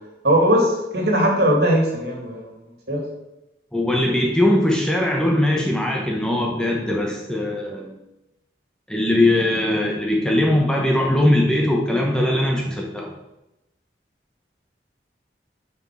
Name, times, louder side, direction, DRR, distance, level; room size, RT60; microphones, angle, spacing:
voice 1, 0.2-2.5 2.9-3.0, equal, 65° right, 0 dB, 2.1 m, -19 dB
voice 2, 3.7-7.9 8.9-13.1, left 1 dB, 5° left, -1 dB, 0.8 m, -20 dB
6.2 x 4.7 x 6.1 m, 0.93 s
head